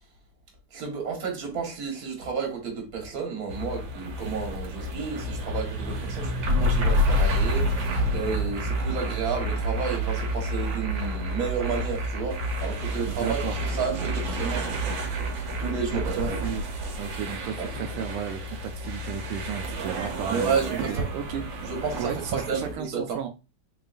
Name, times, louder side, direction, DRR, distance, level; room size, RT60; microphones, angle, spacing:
voice 1, 0.7-15.0 15.6-16.4 17.6-17.7 20.3-21.1 21.6-23.2, right 5 dB, 50° right, 1.6 m, -31 dB
sound 1, 3.5-22.7, equal, 65° right, 1.5 m, -29 dB
voice 2, 13.1-13.5 15.9-16.6 16.9-20.5 20.9-21.4 22.0-23.3, right 8 dB, 85° right, 1.5 m, -34 dB
3.8 x 3.6 x 2.4 m
omnidirectional pair, 2.4 m